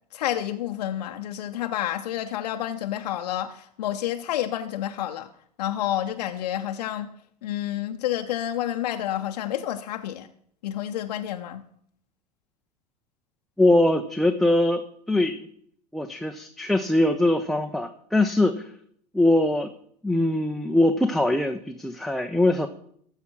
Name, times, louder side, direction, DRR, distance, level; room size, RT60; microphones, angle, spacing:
voice 1, 0.1-5.3 5.6-7.1 7.4-10.3 10.6-11.7, left 12 dB, 70° left, 0.7 m, -29 dB
voice 2, 13.6-15.4 15.9-18.7 19.1-19.7 20.0-22.7, left 1 dB, ahead, 0.6 m, -22 dB
14.0 x 5.8 x 6.2 m
hypercardioid pair, 90°, 21 cm